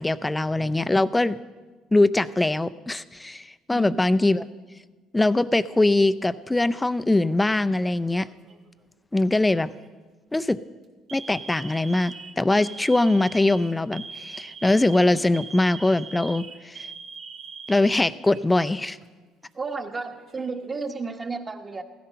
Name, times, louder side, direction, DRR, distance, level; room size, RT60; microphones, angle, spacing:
voice 1, 0.0-1.4 1.9-4.5 5.1-8.3 9.1-9.7 10.3-10.6 11.1-16.8 17.7-19.0, left 2 dB, 15° left, 13 dB, 0.5 m, -22 dB
voice 2, 3.7-4.1 19.5-21.8, right 4 dB, 30° right, 5 dB, 1.4 m, -33 dB
Alarm, 8.2-8.7 9.6-9.9 10.3-10.5 11.1-18.6 18.9-19.1 20.0-20.7, right 5 dB, 65° right, 2.1 m, -42 dB
15.5 x 13.5 x 5.7 m, 1.3 s
supercardioid pair, 85°, 0 cm